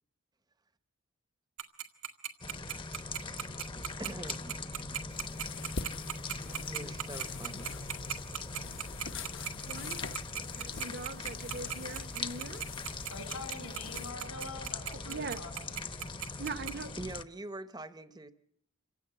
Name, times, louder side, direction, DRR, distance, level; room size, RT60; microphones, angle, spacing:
Tick-tock, 1.6-16.7, right 11 dB, 90° right, 2.0 m, -36 dB
sound 1, 2.4-17.2, left 3 dB, 25° left, 0.9 m, -41 dB
voice 1, 3.2-3.6 4.0-4.9 6.7-7.7 17.0-18.3, right 2 dB, 20° right, 0.9 m, -44 dB
sound 2, 5.1-14.1, left 5 dB, 55° left, 1.0 m, -46 dB
voice 2, 9.7-10.0 10.5-12.6 14.9-15.4 16.4-16.9, right 3 dB, 45° right, 1.0 m, -41 dB
voice 3, 13.1-15.7, left 3 dB, 85° left, 5.9 m, -44 dB
27.5 x 16.5 x 9.0 m
head